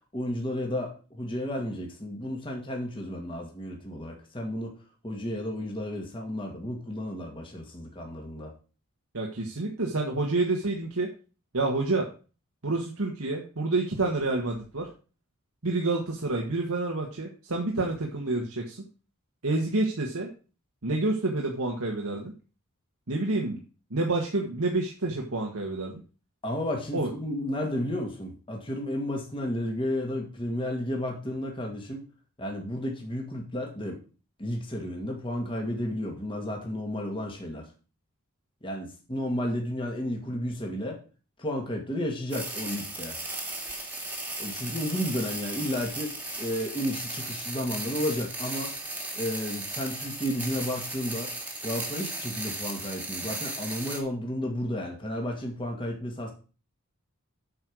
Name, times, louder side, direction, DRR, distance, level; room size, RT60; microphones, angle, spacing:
voice 1, 0.1-4.8 5.0-8.5 26.4-32.1 32.4-34.0 34.4-37.7 38.6-41.0 41.4-43.2 44.4-48.8 49.2-51.3 51.6-56.3, left 1 dB, 25° left, 1 dB, 2.0 m, -32 dB
voice 2, 9.1-11.1 11.5-12.1 12.6-14.9 15.6-18.8 19.4-20.3 20.8-22.3 23.1-23.6 23.9-26.0 26.9-27.1, right 2 dB, 85° right, 0 dB, 1.6 m, -28 dB
sound 1, 42.3-54.0, right 2 dB, 10° right, 1.9 m, -36 dB
8.7 x 5.6 x 6.3 m, 0.36 s
head